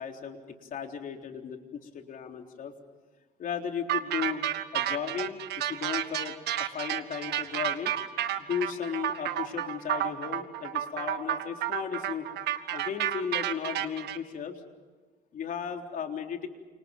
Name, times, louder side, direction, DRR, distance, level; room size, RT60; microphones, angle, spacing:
voice 1, 0.0-2.7 3.4-4.4 4.7-7.9 8.4-12.3 12.7-14.6 15.3-16.5, left 7 dB, 55° left, 3 dB, 3.8 m, -35 dB
sound 1, 3.9-14.2, right 11 dB, 75° right, 1.7 m, -31 dB
29.5 x 28.0 x 5.4 m, 1.4 s
cardioid pair, 110°, 17 cm